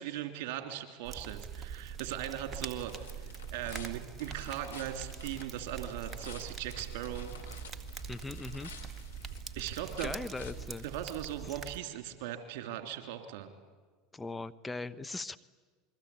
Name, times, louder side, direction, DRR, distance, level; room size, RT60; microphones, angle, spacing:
voice 1, 0.0-7.3 9.5-10.1 10.8-13.5, right 11 dB, 65° right, 7 dB, 3.1 m, -39 dB
sound 1, 1.1-11.8, right 6 dB, 25° right, 1.8 m, -43 dB
sound 2, 1.9-11.4, left 5 dB, 90° left, 3.1 m, -52 dB
voice 2, 8.1-8.7 10.0-10.8 14.1-15.4, left 3 dB, 15° left, 11 dB, 0.8 m, -39 dB
27.5 x 22.5 x 8.5 m, 1.4 s
hypercardioid pair, 80°, 0 cm